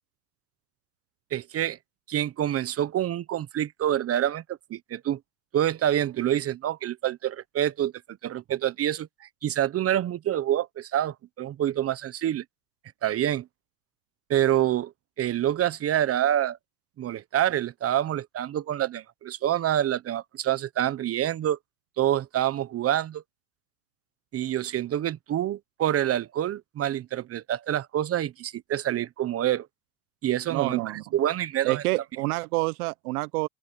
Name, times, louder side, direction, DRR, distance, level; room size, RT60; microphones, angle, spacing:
voice 1, 1.3-1.8 2.1-5.2 5.5-12.4 13.0-13.5 14.3-14.9 15.2-16.6 17.0-21.6 22.0-23.2 24.3-29.7 30.2-31.8, right 11 dB, 30° right, 1.0 m, -27 dB
voice 2, 30.5-31.0 31.6-33.5, right 22 dB, 70° right, 1.0 m, -28 dB
open air
supercardioid pair, 115°, 47 cm